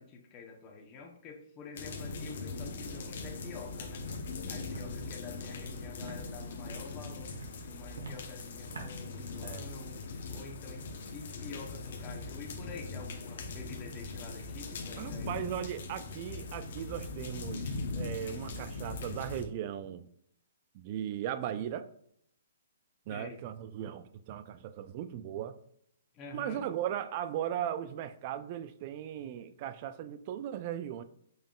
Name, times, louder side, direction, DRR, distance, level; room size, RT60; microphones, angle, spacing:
voice 1, 0.0-4.1 4.5-7.3 7.7-10.0 10.3-10.9 11.1-15.4 23.1-23.4 26.1-26.6, left 4 dB, 25° left, 0.8 m, -48 dB
sound 1, 1.7-19.4, left 3 dB, 60° left, 0.8 m, -40 dB
Walk footsteps, 4.0-4.2 4.7-4.9 5.3-5.5 6.0-6.2 6.6-6.9 7.3-7.5 7.9-8.2 8.7-8.9, right 3 dB, 85° right, 1.3 m, -44 dB
voice 2, 15.0-20.1 20.7-21.9 23.1-25.6 26.3-31.0, right 10 dB, 40° right, 0.3 m, -37 dB
5.4 x 3.6 x 2.3 m
hypercardioid pair, 145°, 0 cm